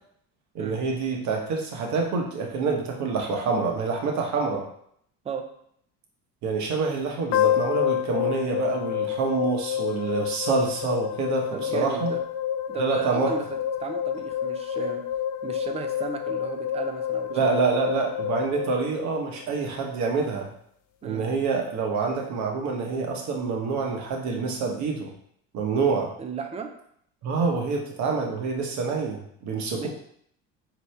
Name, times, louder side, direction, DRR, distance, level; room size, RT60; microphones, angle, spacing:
voice 1, 0.5-4.7 6.4-12.1 12.8-13.4 17.3-20.5 21.0-25.1 25.5-26.1 27.2-29.9, right 4 dB, 60° right, 1 dB, 1.0 m, -27 dB
sound 1, 7.3-19.5, left 10 dB, 75° left, 0.5 m, -28 dB
voice 2, 11.5-12.2 12.7-15.0 15.4-17.5 21.0-21.2 26.2-26.7 29.7-29.9, right 5 dB, 20° right, 4 dB, 0.5 m, -35 dB
4.2 x 2.9 x 3.3 m, 0.68 s
supercardioid pair, 95°, 33 cm